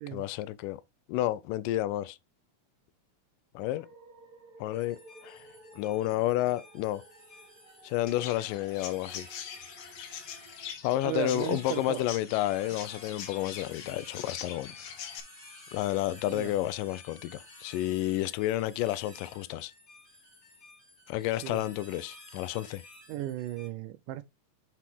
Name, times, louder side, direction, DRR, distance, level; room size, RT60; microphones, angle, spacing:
voice 1, 0.1-0.8 1.1-2.2 3.6-3.9 4.6-5.4 5.7-7.0 7.8-9.3 10.8-14.8 15.7-19.7 21.1-22.8, left 14 dB, 80° left, 2.1 m, -31 dB
sound 1, 3.6-10.7, right 2 dB, 40° right, 3.5 m, -55 dB
sound 2, 4.7-23.7, left 1 dB, 20° left, 2.5 m, -53 dB
Chirp tweet, 8.1-15.2, left 9 dB, 65° left, 2.0 m, -43 dB
voice 2, 11.0-12.1 16.3-16.5 21.4-21.6 23.1-24.2, right 14 dB, 80° right, 2.0 m, -35 dB
6.0 x 5.9 x 3.5 m
omnidirectional pair, 4.0 m